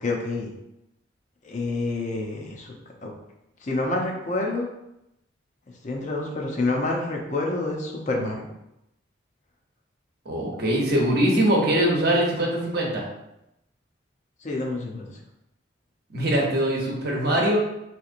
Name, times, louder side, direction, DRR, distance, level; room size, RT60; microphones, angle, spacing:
voice 1, 0.0-0.5 1.4-2.7 3.0-3.1 3.6-4.7 5.8-8.5 14.4-15.1, left 2 dB, 40° left, 0 dB, 0.5 m, -28 dB
voice 2, 10.3-13.0 16.1-17.6, right 1 dB, 55° right, -2 dB, 0.9 m, -22 dB
3.8 x 2.9 x 2.5 m, 0.86 s
head